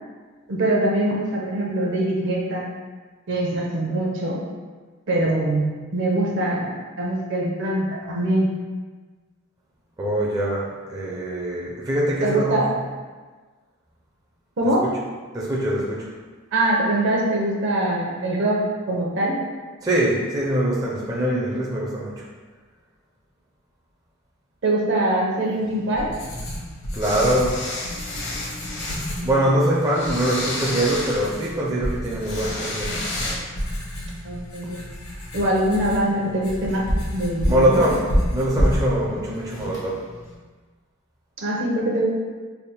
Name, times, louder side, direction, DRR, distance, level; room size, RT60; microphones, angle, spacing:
voice 1, 0.5-2.7 3.3-4.4 5.1-8.5 12.2-12.7 14.6-14.9 16.5-19.4 24.6-26.1 29.1-29.5 34.2-34.8 35.3-36.9 37.1-37.9 41.4-42.1, right 1 dB, 60° right, -2 dB, 0.7 m, -23 dB
voice 2, 10.0-12.8 15.3-16.1 19.8-22.2 26.9-27.6 29.2-33.1 37.5-38.0 38.3-40.0, right 1 dB, 15° right, -5 dB, 0.4 m, -23 dB
Writing, 25.6-40.4, equal, 85° left, 0.9 m, -30 dB
sound 1, 27.0-29.1 29.8-31.6 32.2-33.4, left 2 dB, 60° left, 0.8 m, -31 dB
3.4 x 2.0 x 4.2 m, 1.4 s
head